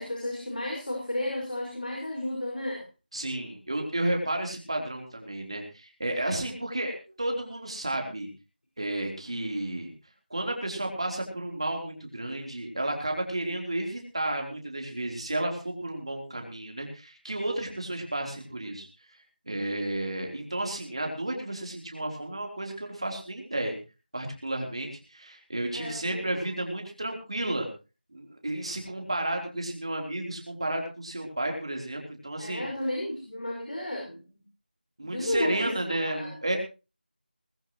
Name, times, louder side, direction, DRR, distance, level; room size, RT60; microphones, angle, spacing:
voice 1, 0.0-2.8 25.7-26.6 32.4-34.3 35.0-36.6, left 1 dB, 55° left, -1 dB, 5.5 m, -33 dB
voice 2, 3.1-8.3 8.8-9.9 10.3-18.9 19.5-23.8 24.1-27.7 28.1-32.7 35.0-36.6, right 1 dB, 35° right, 2 dB, 3.6 m, -32 dB
20.0 x 15.0 x 3.1 m, 0.32 s
figure-of-eight pair, 180°, 5 cm